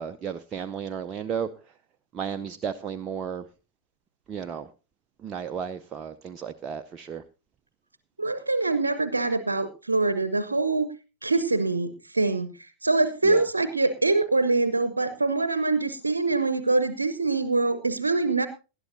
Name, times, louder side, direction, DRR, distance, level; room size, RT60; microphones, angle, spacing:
voice 1, 0.0-1.5 2.1-3.4 4.3-4.7 5.2-7.2 13.2-13.4, right 7 dB, 25° right, 7 dB, 0.6 m, -33 dB
voice 2, 8.2-10.9 11.2-12.5 12.8-18.5, right 3 dB, 80° right, 12 dB, 0.7 m, -24 dB
19.0 x 11.5 x 2.6 m, 0.31 s
figure-of-eight pair, 90°, 0 cm